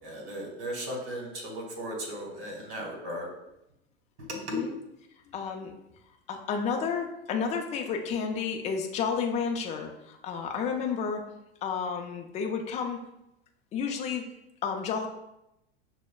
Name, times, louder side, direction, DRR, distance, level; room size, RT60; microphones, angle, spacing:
voice 1, 0.0-3.3 4.3-4.6, equal, 70° right, 0 dB, 1.4 m, -36 dB
voice 2, 4.3-4.7 5.3-5.7 6.3-11.2 11.6-13.0 13.7-14.3 14.6-15.1, left 6 dB, 20° left, 3 dB, 0.4 m, -31 dB
6.1 x 2.1 x 2.3 m, 0.86 s
supercardioid pair, 120°, 34 cm